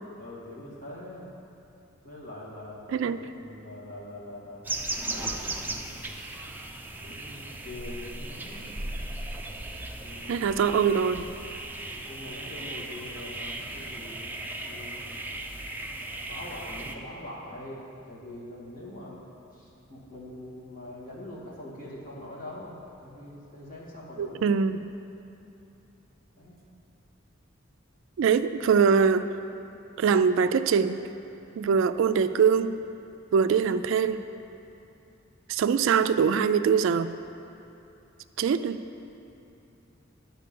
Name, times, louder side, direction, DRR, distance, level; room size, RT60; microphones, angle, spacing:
voice 1, 0.2-1.3 2.0-3.1 3.4-4.7 5.1-6.2 7.0-8.7 10.0-10.5 12.1-15.2 16.3-19.2 19.5-24.4 26.4-26.6, left 1 dB, 45° left, -6 dB, 2.1 m, -43 dB
sound 1, 4.6-17.0, right 2 dB, 10° right, 0.5 m, -37 dB
voice 2, 10.3-11.3 24.2-24.8 28.2-29.2 30.0-31.0 31.6-32.7 33.3-34.2 35.5-37.1 38.4-38.8, right 6 dB, 65° right, 11 dB, 0.3 m, -23 dB
10.5 x 4.5 x 6.8 m, 2.7 s
head